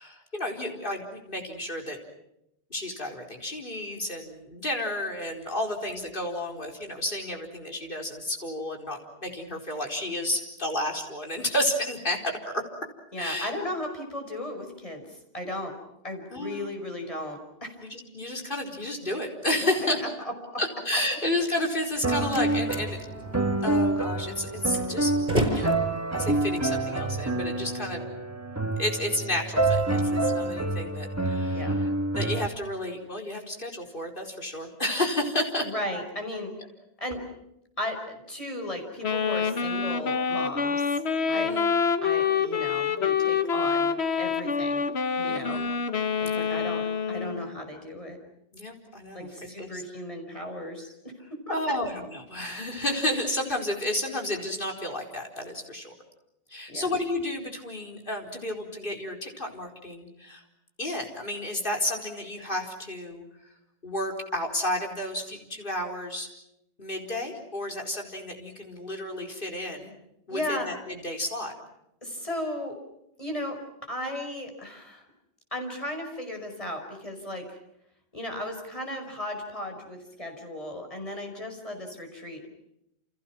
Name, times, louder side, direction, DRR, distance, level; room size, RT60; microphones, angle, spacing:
voice 1, 0.0-2.0 2.7-12.6 13.2-13.5 16.3-16.7 17.8-20.0 20.6-25.1 25.5-25.8 26.1-28.1 28.8-31.9 32.1-35.7 41.3-41.7 45.3-45.7 46.2-46.5 48.5-49.3 49.6-49.8 51.5-55.9 56.5-60.4 60.8-63.2 63.8-66.3 66.8-69.9 70.3-71.5, left 1 dB, 55° left, 2 dB, 4.6 m, -31 dB
voice 2, 13.1-15.7 16.0-17.7 19.8-20.1 20.5-20.6 31.5-31.8 35.6-36.5 37.0-37.2 37.8-41.0 41.3-41.6 42.0-44.9 45.2-45.6 46.2-48.2 49.1-51.0 51.3-51.8 56.7-56.9 70.3-70.7 72.0-72.8 73.2-75.0 75.5-77.6 78.1-82.5, left 1 dB, 35° left, 3 dB, 5.6 m, -35 dB
Slam, 21.7-27.7, equal, 45° right, 6.0 m, -34 dB
sound 1, 22.0-32.5, right 2 dB, 15° right, 1.7 m, -27 dB
Wind instrument woodwind instrument, 39.0-47.5, left 6 dB, 85° left, 1.6 m, -26 dB
30.0 x 28.5 x 6.0 m, 0.81 s
omnidirectional pair, 1.1 m